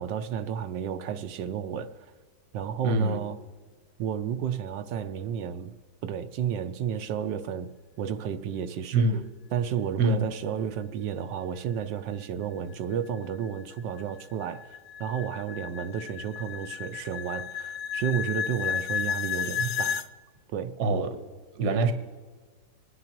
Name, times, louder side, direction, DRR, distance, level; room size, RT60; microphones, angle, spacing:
voice 1, 0.0-2.0 2.5-3.4 4.0-5.7 6.0-7.7 8.0-9.1 9.5-20.1 20.5-20.8, right 8 dB, 80° right, 1.3 m, -32 dB
voice 2, 2.8-3.2 8.9-9.2 10.0-10.2 19.6-19.7 20.8-21.2 21.6-21.9, right 2 dB, 50° right, 1.1 m, -24 dB
sound 1, 12.9-20.1, left 8 dB, 75° left, 1.2 m, -33 dB
26.5 x 10.0 x 2.9 m
omnidirectional pair, 1.9 m